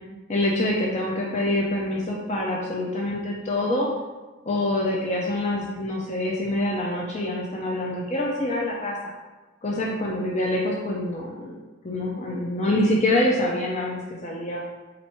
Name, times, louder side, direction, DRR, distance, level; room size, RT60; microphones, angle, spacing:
voice 1, 0.3-3.9 4.5-9.1 9.6-11.6 11.8-14.6, left 1 dB, 35° left, -2 dB, 0.5 m, -25 dB
4.2 x 2.6 x 4.5 m, 1.2 s
head